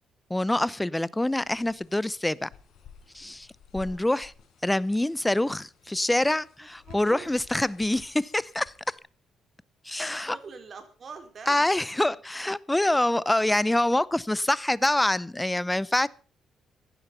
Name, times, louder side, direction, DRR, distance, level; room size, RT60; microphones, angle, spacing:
voice 1, 0.3-2.5 3.1-3.5 3.7-4.3 4.6-9.0 9.8-10.4 11.5-16.1, left 1 dB, 10° left, 0.7 m, -25 dB
sound 1, 1.3-9.0, left 7 dB, 75° left, 5.0 m, -53 dB
voice 2, 3.7-4.1 6.6-7.3 9.9-11.7, right 5 dB, 45° right, 4.2 m, -46 dB
16.0 x 11.0 x 5.6 m
cardioid pair, 90°, 0 cm